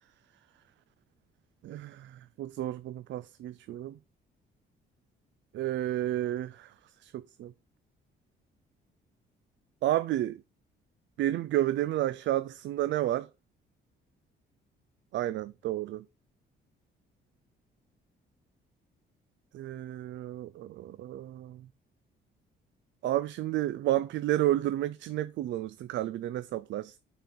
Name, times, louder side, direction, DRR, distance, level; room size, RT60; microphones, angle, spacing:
voice 1, 1.6-4.0 5.5-6.7 7.0-7.5 9.8-10.4 11.2-13.3 15.1-16.0 19.5-21.7 23.0-27.0, right 14 dB, 70° right, 0.4 m, -31 dB
5.8 x 4.3 x 5.1 m
cardioid pair, 90°, 20 cm